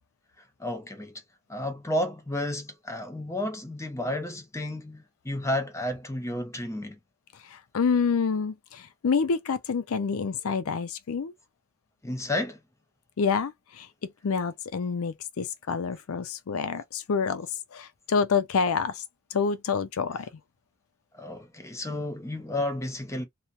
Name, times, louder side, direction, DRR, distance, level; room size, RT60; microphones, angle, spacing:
voice 1, 0.6-1.2 1.5-7.0 12.0-12.6 21.1-23.3, left 1 dB, 15° left, 0.8 m, -32 dB
voice 2, 7.5-11.3 13.2-13.9 14.2-19.0 19.3-20.3, left 5 dB, 85° left, 0.5 m, -27 dB
3.0 x 2.1 x 2.5 m
head